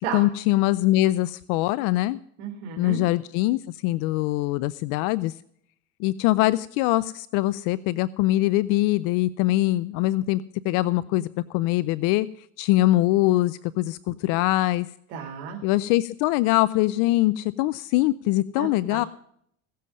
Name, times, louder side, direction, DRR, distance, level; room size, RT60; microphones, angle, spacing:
voice 1, 0.1-2.2 2.8-5.3 6.0-12.3 12.6-14.9 15.6-19.1, left 17 dB, 70° left, 17 dB, 0.6 m, -23 dB
voice 2, 2.4-3.0 15.1-15.6 18.6-19.0, right 7 dB, 80° right, 2 dB, 2.3 m, -33 dB
17.0 x 7.5 x 5.4 m, 0.67 s
supercardioid pair, 105°, 34 cm